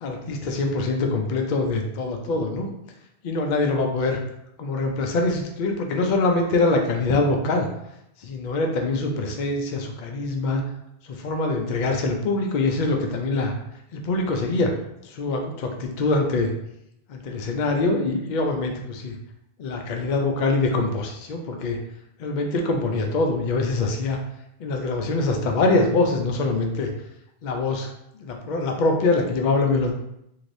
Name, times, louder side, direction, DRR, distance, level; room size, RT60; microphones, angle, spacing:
voice 1, 0.0-2.7 3.2-4.2 4.6-7.7 8.2-10.6 11.2-13.5 13.9-14.7 15.0-16.5 17.1-19.1 19.6-21.8 22.2-24.2 24.6-26.9 27.4-27.9 28.2-29.9, left 3 dB, 55° left, 3 dB, 0.6 m, -24 dB
3.1 x 2.8 x 2.6 m, 0.80 s
omnidirectional pair, 1.1 m